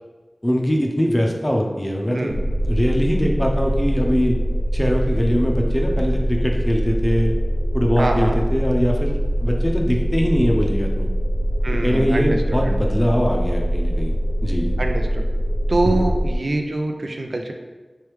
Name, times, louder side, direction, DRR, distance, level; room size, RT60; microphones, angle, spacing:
voice 1, 0.4-4.4 4.7-7.3 7.7-11.1 11.8-14.1 14.4-14.7 15.8-16.0, equal, 20° left, 0 dB, 0.6 m, -22 dB
voice 2, 2.1-2.4 8.0-8.4 11.6-12.9 14.8-15.2 15.7-17.5, right 2 dB, 80° right, 4 dB, 0.4 m, -24 dB
sound 1, 2.3-16.4, equal, 65° left, 0.5 m, -22 dB
3.3 x 3.3 x 3.1 m, 1.2 s
wide cardioid pair, 65°, 0 cm